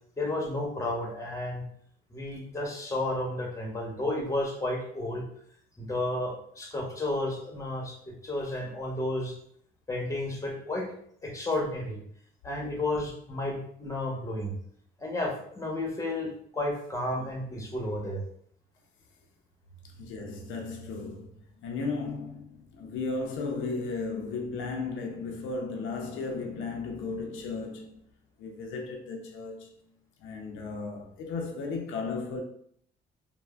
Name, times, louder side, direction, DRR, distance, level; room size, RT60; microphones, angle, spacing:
voice 1, 0.2-1.6 2.1-5.2 5.8-8.0 8.2-9.3 9.9-10.9 11.2-12.0 12.4-14.5 15.0-18.2, left 1 dB, 15° left, 0.8 m, -32 dB
voice 2, 19.8-28.0 28.4-29.7 30.2-32.4, left 4 dB, 85° left, 0.5 m, -35 dB
3.2 x 2.0 x 2.2 m
cardioid pair, 90°, 20 cm